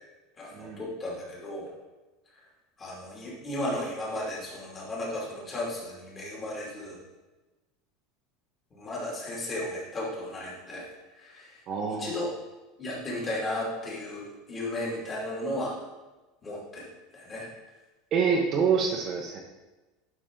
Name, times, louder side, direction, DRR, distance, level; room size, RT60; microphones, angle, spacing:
voice 1, 0.4-1.7 2.8-7.0 8.7-11.6 11.9-12.3 12.8-15.7 16.4-16.9 17.1-17.5, left 1 dB, 20° left, -5 dB, 2.9 m, -35 dB
voice 2, 11.7-12.2 18.1-19.4, right 6 dB, 35° right, -1 dB, 1.0 m, -26 dB
11.5 x 5.9 x 3.9 m, 1.1 s
supercardioid pair, 155°, 0 cm